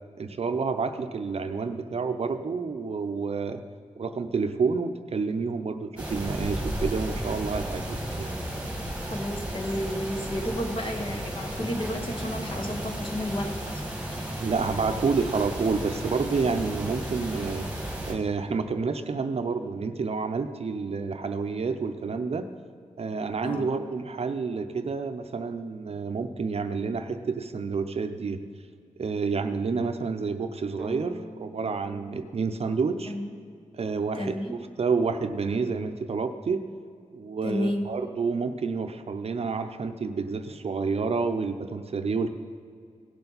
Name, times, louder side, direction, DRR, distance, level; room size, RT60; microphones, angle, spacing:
voice 1, 0.2-3.6 4.0-8.3 14.4-17.7 18.1-22.5 23.0-28.4 29.0-33.1 33.7-36.6 37.1-42.3, right 4 dB, 55° right, 8 dB, 0.6 m, -29 dB
sound 1, 6.0-18.1, right 1 dB, 10° right, 1.6 m, -34 dB
voice 2, 9.0-13.8 23.4-23.7 33.1-33.3 34.1-34.5 37.4-37.9, equal, 45° left, 3 dB, 1.2 m, -32 dB
sound 2, 30.8-34.5, equal, 10° left, 1.9 m, -45 dB
17.0 x 6.9 x 4.0 m, 2.2 s
wide cardioid pair, 120°, 13 cm